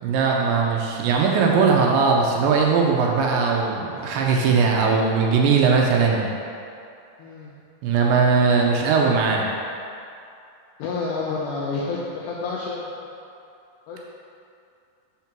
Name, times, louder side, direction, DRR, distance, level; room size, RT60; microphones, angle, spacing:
voice 1, 0.0-6.3 7.8-9.5, right 5 dB, 80° right, 0 dB, 2.2 m, -19 dB
voice 2, 7.2-7.5 10.8-13.1 13.9-14.0, left 4 dB, 85° left, -5 dB, 1.8 m, -29 dB
5.8 x 3.7 x 5.9 m, 2.5 s
omnidirectional pair, 4.3 m